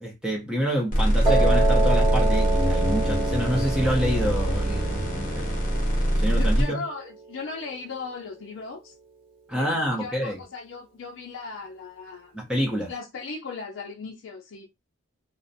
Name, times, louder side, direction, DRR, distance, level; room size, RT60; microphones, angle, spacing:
voice 1, 0.0-5.6 6.2-6.8 9.5-10.4 12.3-12.9, equal, 5° right, 0.5 m, -27 dB
sound 1, 0.9-6.6, right 1 dB, 40° left, 0.7 m, -23 dB
Piano, 1.2-7.4, right 3 dB, 25° right, 0.9 m, -29 dB
sound 2, 2.5-5.7, left 2 dB, 65° right, 0.7 m, -33 dB
voice 2, 6.4-8.9 9.6-12.4 12.9-14.7, left 4 dB, 70° left, 0.4 m, -37 dB
2.5 x 2.0 x 2.6 m
head